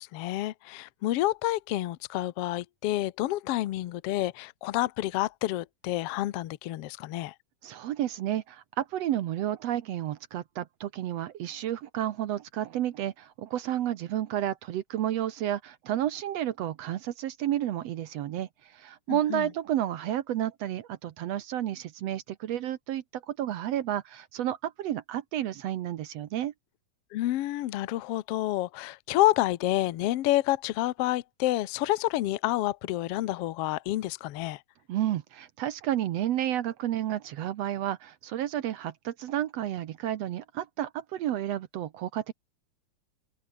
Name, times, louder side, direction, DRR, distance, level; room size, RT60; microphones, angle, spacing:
voice 1, 0.0-7.3 19.1-19.5 27.1-34.6, left 15 dB, 85° left, 1.3 m, -29 dB
voice 2, 7.6-26.5 34.9-42.3, right 12 dB, 70° right, 1.7 m, -31 dB
open air
omnidirectional pair, 3.9 m